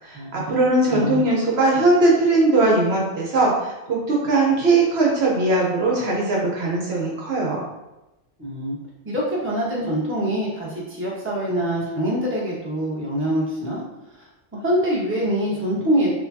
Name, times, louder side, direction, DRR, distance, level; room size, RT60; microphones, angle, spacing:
voice 1, 0.0-7.7, right 2 dB, 65° right, -3 dB, 0.9 m, -20 dB
voice 2, 0.9-1.2 8.4-8.7 9.0-13.8 14.5-16.1, equal, 10° right, -6 dB, 0.8 m, -24 dB
4.8 x 2.2 x 2.6 m, 0.98 s
omnidirectional pair, 1.2 m